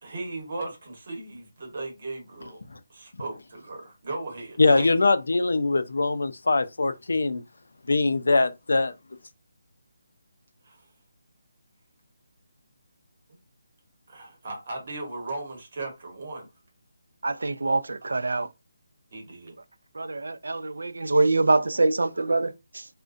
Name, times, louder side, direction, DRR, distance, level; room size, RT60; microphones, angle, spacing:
voice 1, 0.0-2.6 2.9-4.9 10.6-10.8 14.1-16.5 19.1-19.6, right 2 dB, 35° right, 0.9 m, -37 dB
voice 2, 4.6-7.4 7.9-8.9, left 3 dB, 75° left, 0.4 m, -22 dB
voice 3, 17.2-18.5 19.9-22.9, right 3 dB, 75° right, 0.3 m, -25 dB
2.4 x 2.1 x 2.4 m
hypercardioid pair, 180°, 0 cm